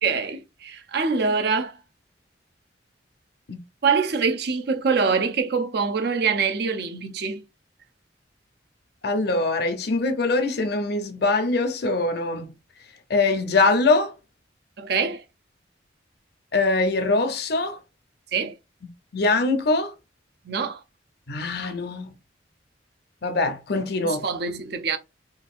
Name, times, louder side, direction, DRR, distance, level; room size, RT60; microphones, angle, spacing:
voice 1, 0.0-1.8 3.8-7.4 14.8-15.2 18.3-18.5 20.4-20.8 24.0-25.0, right 5 dB, 55° right, 0.5 m, -24 dB
voice 2, 9.0-12.5 13.1-14.1 16.5-17.8 19.1-19.9 21.3-22.1 23.2-24.2, left 3 dB, 55° left, 0.6 m, -23 dB
3.9 x 2.5 x 2.4 m
head